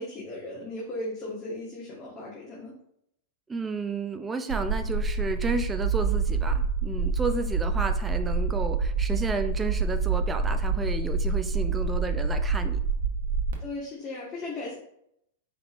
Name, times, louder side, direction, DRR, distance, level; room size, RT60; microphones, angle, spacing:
voice 1, 0.0-2.7 13.6-14.8, left 2 dB, 25° left, -6 dB, 1.3 m, -36 dB
voice 2, 3.5-12.8, right 4 dB, 15° right, 7 dB, 0.4 m, -32 dB
sound 1, 4.5-13.5, right 4 dB, 75° right, 0.9 m, -27 dB
5.1 x 3.3 x 2.5 m, 0.74 s
hypercardioid pair, 130°, 0 cm